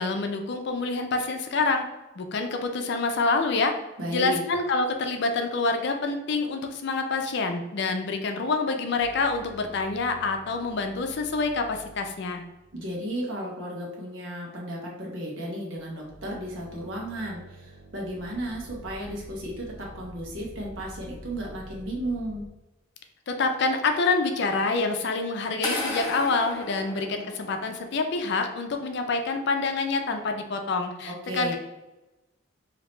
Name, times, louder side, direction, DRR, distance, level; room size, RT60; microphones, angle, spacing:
voice 1, 0.0-1.8 2.2-3.7 4.1-12.4 23.3-31.6, left 3 dB, 60° left, 5 dB, 0.4 m, -27 dB
voice 2, 4.0-4.4 12.7-22.5 31.1-31.6, equal, 85° right, -2 dB, 1.0 m, -34 dB
sound 1, 9.0-13.1 15.7-22.5, right 1 dB, 55° right, 0.7 m, -47 dB
sound 2, 25.6-27.7, left 2 dB, 20° left, 0.9 m, -33 dB
3.0 x 2.8 x 3.2 m, 1.0 s
head